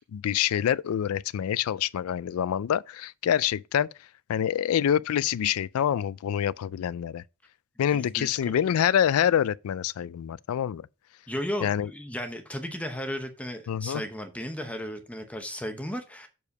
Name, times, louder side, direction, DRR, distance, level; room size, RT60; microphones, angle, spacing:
voice 1, 0.1-3.9 4.3-7.2 7.8-10.8 11.6-11.9 13.7-14.0, left 9 dB, 75° left, 0.3 m, -26 dB
voice 2, 7.9-8.5 11.3-16.3, equal, 5° left, 0.8 m, -35 dB
6.9 x 4.8 x 4.7 m
head